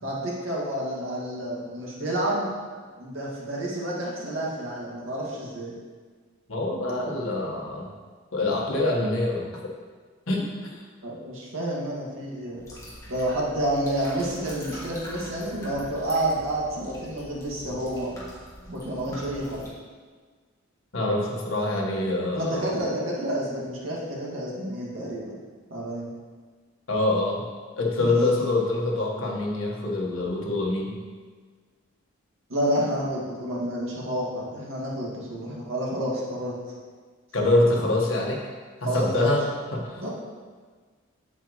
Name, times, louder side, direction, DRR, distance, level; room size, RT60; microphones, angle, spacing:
voice 1, 0.0-2.5 3.0-5.7 11.0-12.6 13.1-18.1 18.7-19.6 22.3-25.3 25.7-26.1 28.0-28.4 32.5-36.5 38.8-39.1 40.0-40.1, right 1 dB, 75° right, -5 dB, 2.2 m, -29 dB
voice 2, 6.5-7.9 8.3-9.7 10.3-10.7 20.9-22.7 26.9-27.4 27.8-30.9 37.3-38.4 38.8-40.0, left 2 dB, 85° left, -2 dB, 1.6 m, -25 dB
sound 1, 12.6-19.7, equal, 15° left, 1.8 m, -43 dB
8.1 x 7.5 x 3.2 m, 1.5 s
head